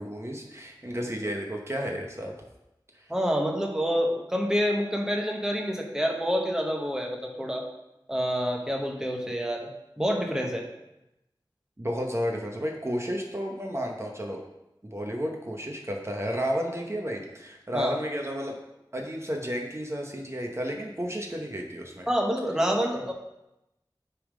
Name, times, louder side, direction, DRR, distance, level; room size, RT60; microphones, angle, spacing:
voice 1, 0.0-2.3 2.9-3.1 11.8-14.4 14.8-18.5 18.9-22.1, equal, 30° right, 0 dB, 1.0 m, -32 dB
voice 2, 3.1-7.6 8.1-9.7 10.0-10.7 17.7-17.9 22.1-23.1, equal, 5° right, 1 dB, 1.0 m, -27 dB
8.4 x 3.7 x 4.9 m, 0.91 s
wide cardioid pair, 50°, 9 cm